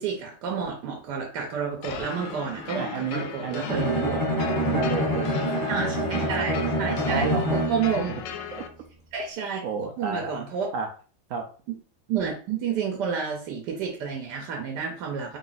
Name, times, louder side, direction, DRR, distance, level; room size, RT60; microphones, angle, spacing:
voice 1, 0.0-3.8 5.7-7.3 7.5-8.1 9.1-9.6 10.0-10.7 12.1-15.4, right 6 dB, 70° right, 1 dB, 1.3 m, -30 dB
sound 1, 1.8-8.7, left 7 dB, 85° left, 1.3 m, -37 dB
voice 2, 2.8-6.5 7.0-8.2 8.5-8.6 9.6-10.4 10.7-10.9 11.3-11.5, right 5 dB, 85° right, 2 dB, 0.7 m, -32 dB
Bowed string instrument, 3.7-8.0, equal, 30° left, 0.3 m, -26 dB
3.5 x 2.4 x 3.9 m, 0.39 s
omnidirectional pair, 2.0 m